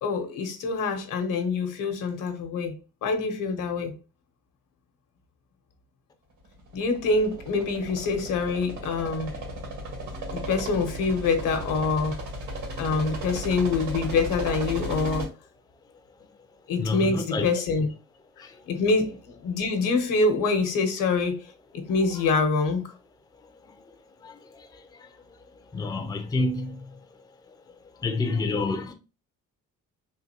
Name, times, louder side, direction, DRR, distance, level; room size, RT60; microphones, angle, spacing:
voice 1, 0.0-2.7 3.0-3.9 6.7-9.3 10.3-12.2 12.8-15.3 16.7-17.9 18.7-21.4 21.9-22.9, left 4 dB, 80° left, 0.9 m, -25 dB
sound 1, 6.6-15.3, right 1 dB, 65° right, 1.5 m, -35 dB
voice 2, 16.8-17.5 25.7-26.7 28.0-28.9, left 3 dB, 10° left, 0.4 m, -27 dB
3.8 x 2.5 x 2.8 m
cardioid pair, 120°, 32 cm